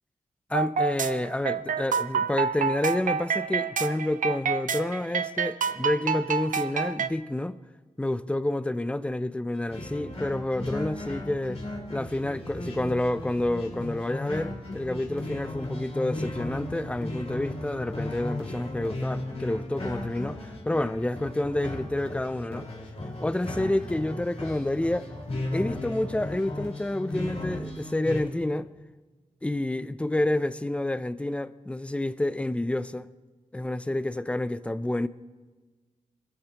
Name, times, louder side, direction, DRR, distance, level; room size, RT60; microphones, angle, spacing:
voice 1, 0.5-7.6 8.0-11.6 11.9-22.7 23.2-25.1 25.5-28.7 29.4-33.1 33.5-35.1, left 1 dB, 10° left, 0.5 m, -29 dB
sound 1, 0.5-7.1, right 6 dB, 80° right, 0.6 m, -28 dB
sound 2, 9.7-28.2, left 1 dB, 55° left, 4.5 m, -36 dB
25.0 x 15.0 x 3.0 m
wide cardioid pair, 105°, 13 cm